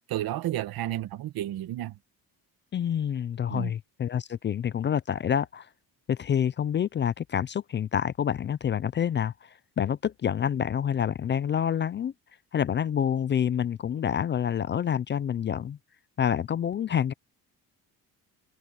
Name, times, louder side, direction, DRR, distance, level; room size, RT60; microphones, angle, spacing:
voice 1, 0.1-2.0 3.5-3.7, right 13 dB, 75° right, 1.3 m, -31 dB
voice 2, 2.7-5.7 6.1-12.1 12.5-15.8 16.2-17.1, left 8 dB, 30° left, 0.4 m, -27 dB
cardioid pair, 135°, 37 cm